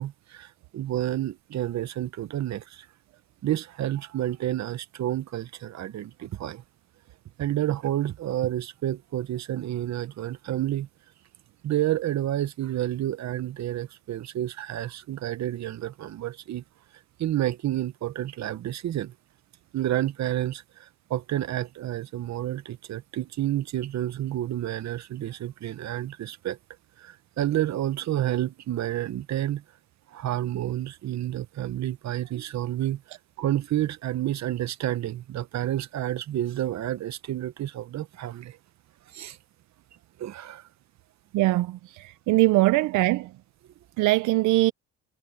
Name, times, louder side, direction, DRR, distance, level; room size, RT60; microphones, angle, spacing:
voice 1, 0.0-2.9 3.4-6.6 7.4-10.9 11.6-16.6 17.2-19.1 19.7-26.6 27.0-29.6 30.1-33.0 33.4-38.6 39.1-39.4 40.2-40.6, right 13 dB, 65° right, 1.0 m, -30 dB
voice 2, 41.3-43.3 44.0-44.7, right 19 dB, 85° right, 0.5 m, -22 dB
cardioid pair, 90°, 30 cm